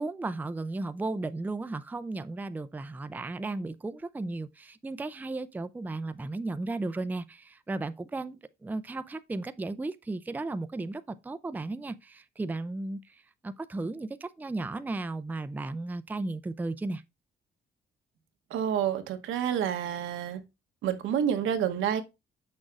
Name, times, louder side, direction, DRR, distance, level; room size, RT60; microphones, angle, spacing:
voice 1, 0.0-17.0, right 2 dB, 10° right, 0.4 m, -35 dB
voice 2, 18.5-20.4 20.8-22.0, right 9 dB, 85° right, 1.0 m, -28 dB
6.4 x 6.2 x 2.4 m
cardioid pair, 90°, 20 cm